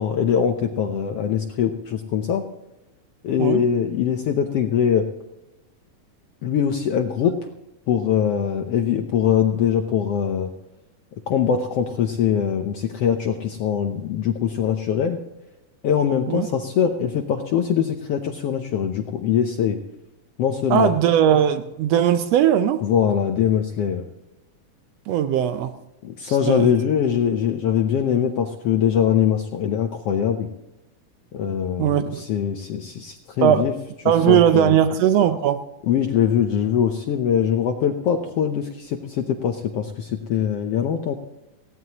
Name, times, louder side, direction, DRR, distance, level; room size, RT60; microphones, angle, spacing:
voice 1, 0.0-2.4 3.2-5.1 6.4-7.5 7.9-10.5 11.3-15.2 15.8-19.8 20.4-20.9 22.8-24.0 26.0-30.5 31.3-33.7 34.3-34.8 35.9-41.2, left 8 dB, 70° left, 5 dB, 1.4 m, -22 dB
voice 2, 20.7-22.8 25.1-25.7 26.3-26.7 31.8-32.2 33.4-33.7 34.0-35.6, right 10 dB, 85° right, 10 dB, 1.4 m, -19 dB
19.0 x 16.0 x 2.9 m, 0.94 s
omnidirectional pair, 3.7 m